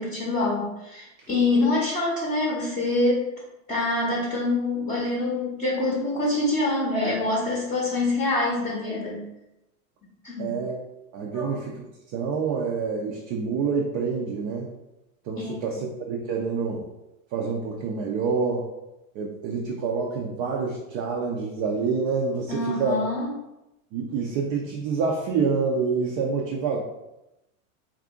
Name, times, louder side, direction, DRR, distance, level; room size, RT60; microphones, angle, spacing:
voice 1, 0.0-3.3 3.7-9.2 10.2-10.5 11.3-11.6 15.4-15.6 22.5-23.3, left 2 dB, 20° left, -4 dB, 0.7 m, -25 dB
voice 2, 10.4-10.8 11.1-11.7 12.1-14.7 15.2-16.8 17.3-18.7 19.1-23.0 23.9-26.8, right 5 dB, 35° right, -1 dB, 0.4 m, -27 dB
2.7 x 2.4 x 3.6 m, 0.93 s
supercardioid pair, 130°, 42 cm